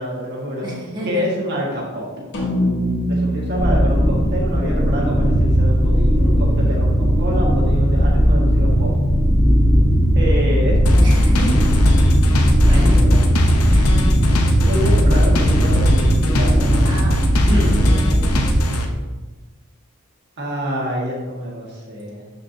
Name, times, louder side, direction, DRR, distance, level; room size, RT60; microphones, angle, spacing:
voice 1, 0.0-0.7 1.0-2.1 3.1-8.9 10.1-11.0 12.5-13.3 14.6-16.9 17.4-17.9 20.4-22.3, equal, 50° right, -4 dB, 1.9 m, -27 dB
voice 2, 0.6-1.3 11.0-11.6 12.6-13.1 13.7-13.9 16.9-17.2 17.5-18.2, right 1 dB, 20° right, -7 dB, 2.0 m, -31 dB
sound 1, 2.3-6.8, equal, 50° left, 1.4 m, -26 dB
sound 2, 3.6-18.6, equal, 5° right, 1.2 m, -16 dB
sound 3, 10.9-18.9, left 1 dB, 80° left, 0.9 m, -21 dB
12.5 x 5.0 x 2.8 m, 1.3 s
head